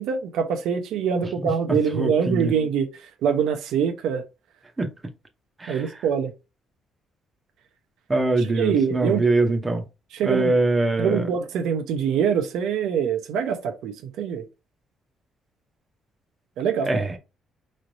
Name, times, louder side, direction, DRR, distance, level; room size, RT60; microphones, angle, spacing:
voice 1, 0.0-2.9 3.2-4.2 5.7-6.3 8.4-9.2 10.1-10.5 11.0-14.5 16.6-16.9, right 7 dB, 80° right, 0.7 m, -24 dB
voice 2, 1.4-2.5 4.8-4.9 5.6-5.8 8.1-9.8 10.2-11.3 16.8-17.2, right 2 dB, 15° right, 0.7 m, -23 dB
4.2 x 3.2 x 2.6 m
cardioid pair, 155°, 0 cm